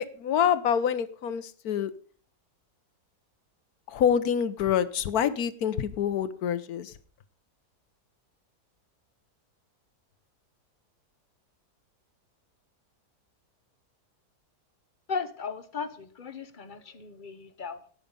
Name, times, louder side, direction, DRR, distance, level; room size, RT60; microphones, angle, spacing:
voice 1, 0.0-1.9 3.9-6.9, left 8 dB, 70° left, 14 dB, 1.3 m, -26 dB
voice 2, 15.1-17.8, left 5 dB, 40° left, 12 dB, 0.8 m, -36 dB
17.5 x 6.6 x 5.3 m, 0.43 s
omnidirectional pair, 1.7 m